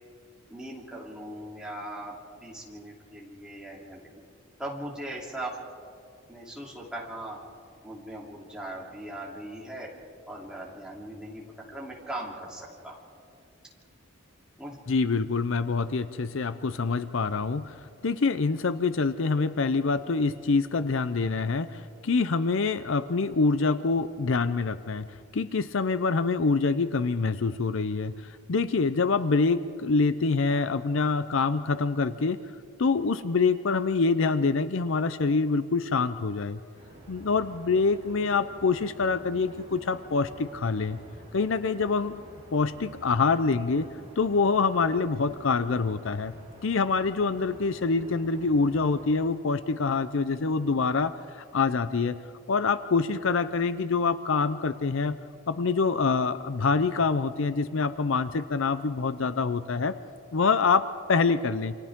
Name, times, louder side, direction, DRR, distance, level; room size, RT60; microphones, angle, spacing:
voice 1, 0.5-2.2 2.4-4.0 4.6-5.6 6.3-7.4 7.8-9.9 10.3-13.0 14.6-14.8, right 1 dB, 5° right, -5 dB, 3.1 m, -39 dB
voice 2, 14.9-17.7 18.0-25.1 25.3-32.4 32.8-36.6 37.1-41.0 41.3-42.2 42.5-43.9 44.2-46.3 46.6-52.2 52.5-55.2 55.5-59.9 60.3-61.7, left 4 dB, 65° left, 13 dB, 0.6 m, -25 dB
sound 1, 36.7-49.1, equal, 30° right, 7.3 m, -49 dB
28.5 x 26.0 x 3.7 m, 2.3 s
head